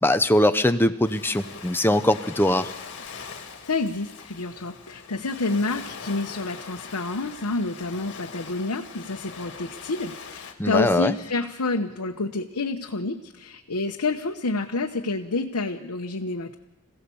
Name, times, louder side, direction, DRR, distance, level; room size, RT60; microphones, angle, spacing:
voice 1, 0.0-2.7 10.6-11.2, left 1 dB, 10° left, 9 dB, 0.8 m, -21 dB
Ocean, 1.0-10.5, left 5 dB, 55° left, 2.2 m, -42 dB
voice 2, 3.6-16.5, left 3 dB, 90° left, 1 dB, 1.0 m, -29 dB
26.5 x 16.0 x 7.0 m, 1.1 s
head